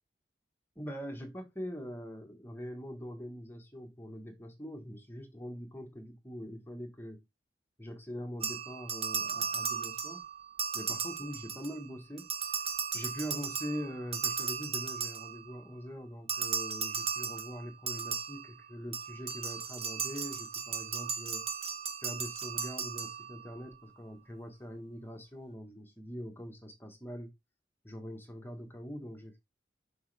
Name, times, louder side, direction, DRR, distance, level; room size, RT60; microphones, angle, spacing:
voice 1, 0.8-7.2 7.8-10.2 10.7-12.3 12.9-21.5 22.0-27.3 27.8-29.4, equal, 10° left, 1.2 m, -43 dB
sound 1, 8.4-11.9 12.2-15.6 16.3-23.6, right 6 dB, 35° right, 0.9 m, -36 dB
7.9 x 5.5 x 3.3 m
head